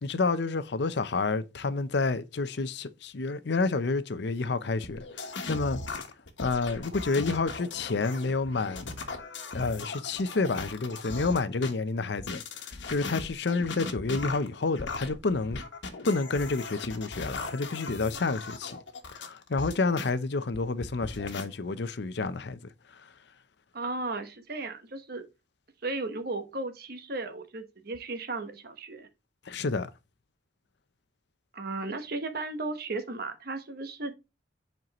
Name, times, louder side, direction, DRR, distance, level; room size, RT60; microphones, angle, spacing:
voice 1, 0.0-5.8 6.4-9.0 9.5-15.6 16.0-18.8 19.1-22.6 29.5-29.9, left 3 dB, 65° left, 0.6 m, -29 dB
sound 1, 4.8-11.7 12.2-20.1 20.5-21.4, left 3 dB, 80° left, 1.3 m, -38 dB
voice 2, 23.7-25.2 25.8-29.1 31.5-34.1, right 3 dB, 55° right, 1.1 m, -35 dB
7.5 x 4.5 x 3.0 m
head